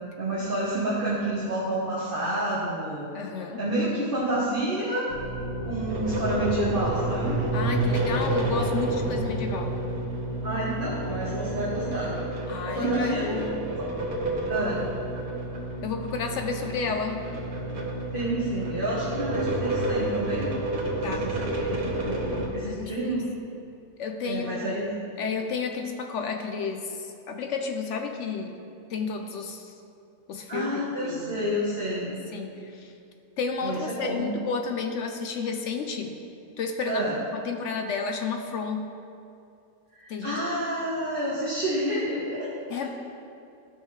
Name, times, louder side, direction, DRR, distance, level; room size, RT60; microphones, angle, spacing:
voice 1, 0.2-3.1 3.5-5.1 5.6-7.4 10.4-12.1 12.6-13.5 14.5-14.8 18.1-20.5 20.9-23.2 24.2-24.9 30.5-32.2 33.6-34.3 36.8-37.2 39.9-42.9, right 1 dB, 40° right, -8 dB, 1.4 m, -29 dB
voice 2, 3.1-3.6 7.5-9.8 12.5-13.7 15.8-17.3 21.0-21.3 22.6-22.9 24.0-24.8 25.2-28.5 28.9-29.7 30.3-31.5 32.3-32.9 33.4-36.2 36.6-37.0 37.3-38.9 40.1-40.4 42.7-42.9, left 5 dB, 65° left, 5 dB, 0.8 m, -31 dB
sound 1, 5.1-22.5, right 2 dB, 80° right, 1.6 m, -29 dB
13.0 x 5.4 x 3.2 m, 2.6 s
omnidirectional pair, 1.6 m